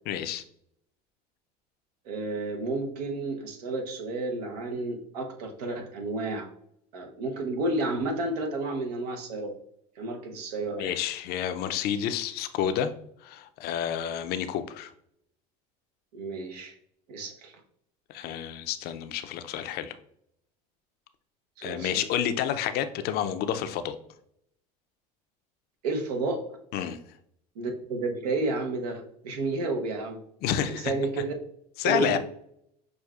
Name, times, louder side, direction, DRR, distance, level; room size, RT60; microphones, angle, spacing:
voice 1, 0.1-0.4 10.8-12.9 13.2-14.9 18.1-20.0 21.6-24.0 26.7-27.0 30.4-30.9 31.8-32.2, left 9 dB, 55° left, 10 dB, 0.5 m, -29 dB
voice 2, 2.0-6.5 6.9-9.5 10.0-11.0 16.1-16.7 17.1-17.6 21.6-22.0 25.8-26.5 27.6-30.2 30.5-31.3 31.8-32.2, right 2 dB, 85° right, 4 dB, 0.8 m, -31 dB
6.2 x 2.4 x 2.3 m, 0.71 s
supercardioid pair, 95°, 20 cm